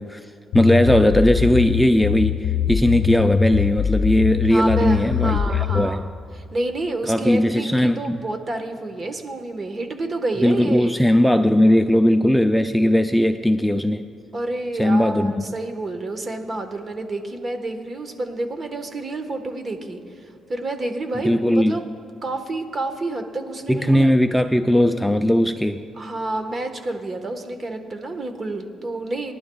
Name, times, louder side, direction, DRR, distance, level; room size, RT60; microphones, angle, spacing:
voice 1, 0.0-6.0 7.1-8.2 10.4-14.1 14.8-15.5 21.2-21.8 23.7-25.8, left 1 dB, 5° left, 7 dB, 0.4 m, -18 dB
sound 1, 0.5-5.9, left 8 dB, 80° left, 0.6 m, -23 dB
voice 2, 4.5-6.0 6.3-10.9 14.3-20.0 20.5-21.9 22.2-24.1 26.0-29.3, right 2 dB, 35° right, 6 dB, 1.3 m, -29 dB
23.0 x 11.0 x 2.3 m, 2.6 s
cardioid pair, 90°, 0 cm